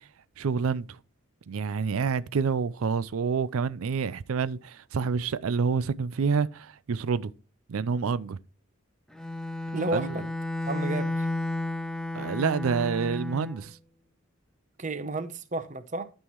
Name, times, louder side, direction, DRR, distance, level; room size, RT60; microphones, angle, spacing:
voice 1, 0.4-0.9 1.5-7.3 7.7-8.4 9.9-10.1 12.1-13.7, right 5 dB, 80° right, 0.4 m, -28 dB
Bowed string instrument, 9.1-13.6, left 2 dB, 5° left, 0.6 m, -32 dB
voice 2, 9.7-10.3 10.7-11.3 14.8-16.1, right 2 dB, 35° right, 0.8 m, -32 dB
11.5 x 5.5 x 3.0 m
head